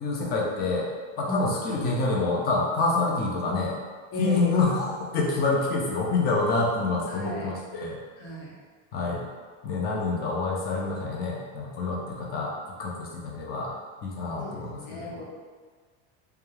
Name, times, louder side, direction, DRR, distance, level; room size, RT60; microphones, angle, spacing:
voice 1, 0.0-0.9 1.2-3.7 4.2-8.0 8.9-9.3 9.6-12.5 12.8-13.8 14.0-15.2, left 3 dB, 25° left, -2 dB, 0.3 m, -27 dB
voice 2, 4.1-4.5 7.1-7.5 8.2-8.6 14.4-15.2, right 1 dB, 70° left, -5 dB, 1.0 m, -34 dB
2.2 x 2.2 x 3.0 m, 1.5 s
cardioid pair, 140°, 41 cm